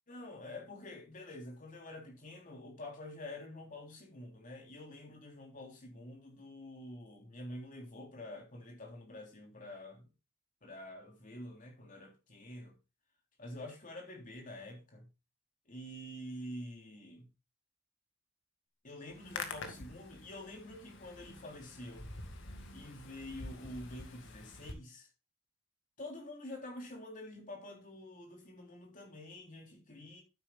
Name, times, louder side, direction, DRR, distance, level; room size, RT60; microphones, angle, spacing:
voice 1, 0.1-10.1 10.6-12.7 13.4-15.1 15.7-17.3 18.8-22.1 22.7-25.1 26.0-30.2, left 1 dB, 35° left, 3.4 m, -47 dB
Hands, 19.1-24.7, left 3 dB, 55° left, 2.0 m, -47 dB
12.0 x 9.9 x 2.3 m
head